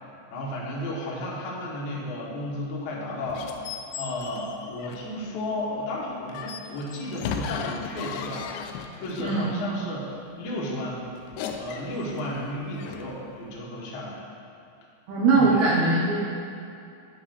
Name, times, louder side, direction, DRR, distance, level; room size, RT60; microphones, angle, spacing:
voice 1, 0.3-3.6 4.0-11.1 11.4-14.2 15.3-15.7, left 1 dB, 65° left, -5 dB, 2.0 m, -33 dB
sound 1, 3.3-5.2 6.3-9.4 11.2-13.2, left 6 dB, 85° left, 2.7 m, -36 dB
voice 2, 9.2-9.6 15.1-16.2, right 3 dB, 80° right, -4 dB, 2.2 m, -21 dB
9.6 x 3.3 x 6.4 m, 2.6 s
omnidirectional pair, 5.1 m